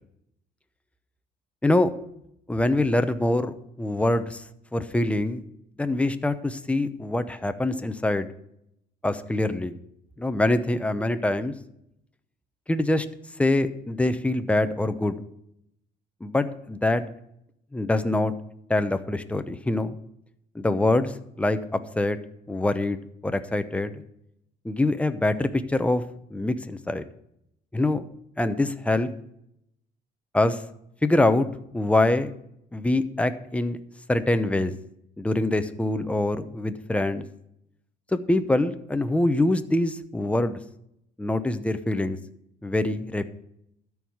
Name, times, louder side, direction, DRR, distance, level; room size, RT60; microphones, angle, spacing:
voice 1, 2.5-4.4 4.7-5.4 5.8-8.3 9.0-9.7 10.2-11.5 12.7-13.1 13.4-15.2 16.2-17.0 17.7-18.3 18.7-20.0 20.5-22.2 22.5-23.9 24.6-26.0 26.3-27.0 27.7-28.0 28.4-29.1 30.3-30.6 31.0-31.5 31.7-32.3 32.7-33.8 34.1-34.7 35.2-37.2 38.1-40.6 41.2-42.2 42.6-43.3, left 2 dB, 5° left, 10 dB, 0.8 m, -24 dB
13.0 x 4.8 x 8.7 m, 0.76 s
cardioid pair, 110°, 17 cm